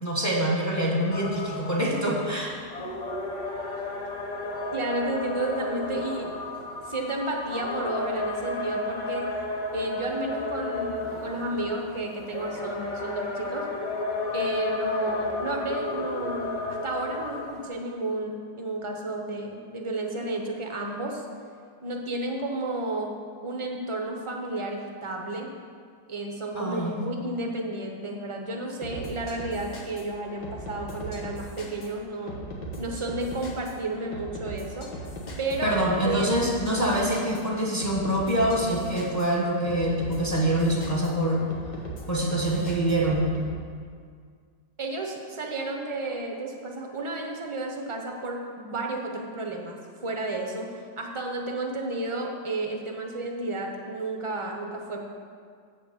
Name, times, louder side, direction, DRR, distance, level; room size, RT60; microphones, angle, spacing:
voice 1, 0.0-2.6 26.5-27.0 35.6-41.4 42.1-43.3, right 1 dB, 10° left, -2 dB, 1.0 m, -25 dB
sound 1, 1.1-17.7, left 2 dB, 45° left, 0.5 m, -33 dB
voice 2, 4.7-6.3 6.9-9.3 9.7-13.7 14.3-21.2 21.8-23.1 23.4-25.5 26.1-32.4 32.8-34.9 35.4-35.8 36.0-36.4 44.8-55.0, right 2 dB, 45° right, 1 dB, 0.4 m, -32 dB
sound 2, 28.8-43.5, equal, 90° left, 1.9 m, -39 dB
8.1 x 5.1 x 7.0 m, 2.1 s
omnidirectional pair, 1.8 m